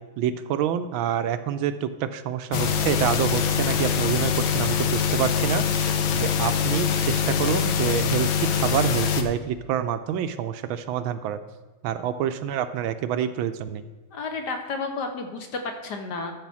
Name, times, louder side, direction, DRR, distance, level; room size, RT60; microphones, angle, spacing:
voice 1, 0.2-11.4 11.8-13.8, right 9 dB, 80° right, 10 dB, 1.3 m, -27 dB
sound 1, 2.5-9.2, left 7 dB, 75° left, 1.6 m, -23 dB
voice 2, 14.1-16.3, left 3 dB, 60° left, 4 dB, 1.4 m, -31 dB
12.5 x 4.8 x 6.1 m, 1.3 s
omnidirectional pair, 2.3 m